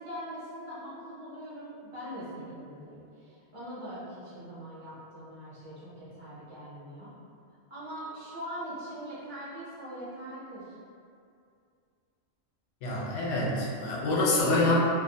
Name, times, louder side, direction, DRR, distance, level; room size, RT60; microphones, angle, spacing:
voice 1, 0.0-7.1 7.7-10.8, equal, 40° right, -10 dB, 0.5 m, -42 dB
voice 2, 12.8-14.8, left 2 dB, 80° left, -4 dB, 0.9 m, -26 dB
2.5 x 2.2 x 2.6 m, 2.3 s
omnidirectional pair, 1.2 m